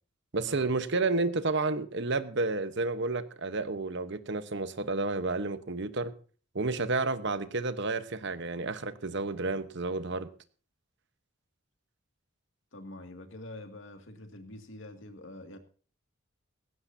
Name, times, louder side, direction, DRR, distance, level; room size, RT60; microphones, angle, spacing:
voice 1, 0.3-6.1 6.5-10.3, right 3 dB, 55° right, 13 dB, 1.0 m, -31 dB
voice 2, 12.7-15.6, left 1 dB, 55° left, 6 dB, 2.2 m, -46 dB
18.0 x 16.0 x 2.7 m, 0.39 s
head